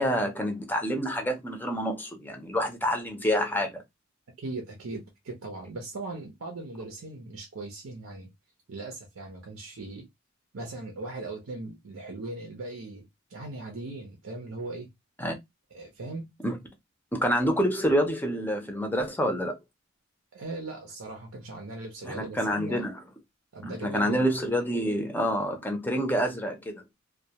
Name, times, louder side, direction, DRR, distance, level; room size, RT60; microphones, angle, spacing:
voice 1, 0.0-3.8 15.2-15.3 16.4-16.6 17.1-19.5 22.0-23.0 23.6-26.8, equal, 10° left, 0.4 m, -27 dB
voice 2, 4.4-8.3 8.7-10.1 10.5-14.9 15.7-16.3 20.3-22.9 23.5-24.2, right 2 dB, 85° right, 0.6 m, -39 dB
2.2 x 2.1 x 2.8 m
head